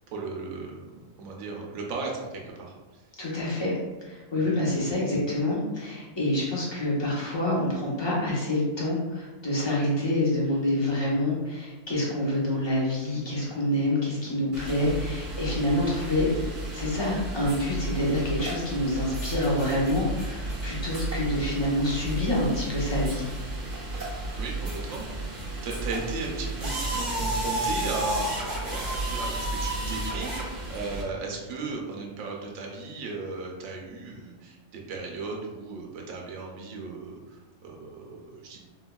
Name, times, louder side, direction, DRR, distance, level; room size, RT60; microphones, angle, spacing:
voice 1, 0.1-3.0 4.3-4.6 24.4-25.4 25.6-38.6, right 3 dB, 75° right, 0 dB, 1.0 m, -36 dB
voice 2, 3.2-3.7 4.0-16.3 16.7-23.2, left 1 dB, 25° left, -6 dB, 0.7 m, -27 dB
sound 1, 14.5-31.0, right 2 dB, 60° right, 1.3 m, -32 dB
4.3 x 2.2 x 2.2 m, 1.2 s
omnidirectional pair, 1.4 m